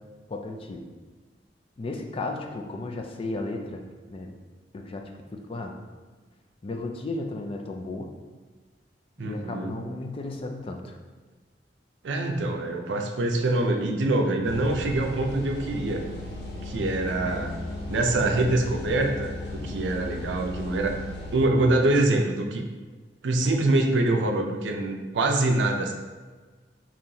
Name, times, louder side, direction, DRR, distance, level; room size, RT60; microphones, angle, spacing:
voice 1, 0.3-0.8 1.8-3.8 4.1-4.3 4.7-5.1 5.5-5.7 6.6-8.1 9.2-11.0 17.2-17.4, left 2 dB, 30° left, 3 dB, 0.4 m, -34 dB
voice 2, 9.2-9.8 12.0-16.0 16.6-17.5 17.9-21.0 21.3-22.6 23.2-25.9, right 2 dB, 80° right, 3 dB, 0.4 m, -25 dB
sound 1, 14.4-21.4, left 1 dB, 65° left, 0.8 m, -36 dB
3.8 x 3.0 x 2.8 m, 1.4 s
head